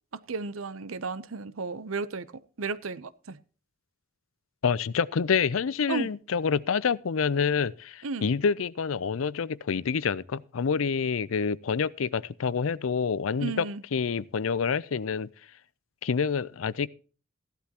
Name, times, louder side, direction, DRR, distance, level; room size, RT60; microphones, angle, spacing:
voice 1, 0.3-2.3 2.6-3.4 5.9-6.1 8.0-8.3 13.4-13.8, right 4 dB, 85° right, 0.7 m, -33 dB
voice 2, 4.6-13.7 13.9-15.3 16.0-16.9, left 6 dB, 75° left, 0.5 m, -27 dB
15.0 x 11.5 x 2.9 m
head